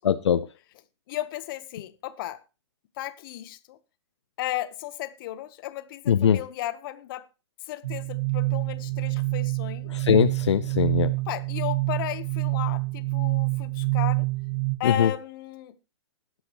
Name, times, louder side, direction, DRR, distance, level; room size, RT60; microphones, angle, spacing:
voice 1, 0.0-0.5 6.1-6.4 9.9-11.1 14.8-15.1, left 8 dB, 80° left, 0.7 m, -21 dB
voice 2, 1.1-2.4 3.0-3.8 4.4-7.3 7.7-9.9 11.3-14.3 14.8-15.7, left 14 dB, 50° left, 1.2 m, -34 dB
sound 1, 7.8-14.8, right 23 dB, 70° right, 1.6 m, -27 dB
20.0 x 7.8 x 3.1 m
hypercardioid pair, 125°, 15 cm